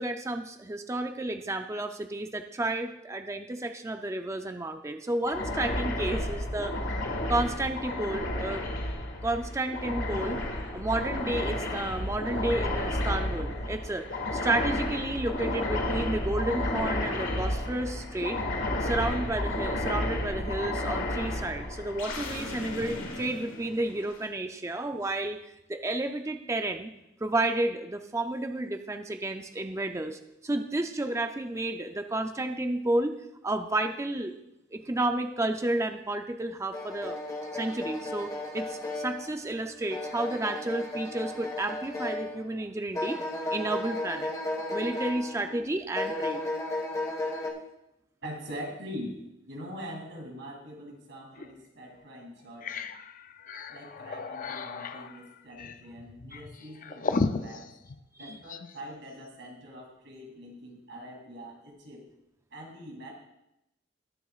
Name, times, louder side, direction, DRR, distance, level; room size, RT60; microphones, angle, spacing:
voice 1, 0.0-6.8 7.3-8.6 9.2-10.4 10.7-14.1 14.3-18.4 18.8-25.4 25.7-26.9 27.2-33.2 33.4-34.3 34.7-37.2 37.5-43.2 43.5-44.4 44.7-46.4 58.2-58.4, right 2 dB, 15° right, 6 dB, 0.4 m, -31 dB
sound 1, 5.2-24.1, left 1 dB, 80° left, 1.9 m, -32 dB
sound 2, 36.7-42.6 42.9-45.6 45.9-47.5, left 2 dB, 20° left, 1.5 m, -34 dB
voice 2, 48.2-49.2 49.5-52.9 53.7-57.7 58.2-62.0 62.5-63.1, equal, 65° right, -1 dB, 2.8 m, -43 dB
sound 3, 51.4-51.5 52.0-52.1 52.4-58.8, left 4 dB, 45° left, 0.4 m, -35 dB
19.5 x 6.9 x 2.4 m, 0.87 s
head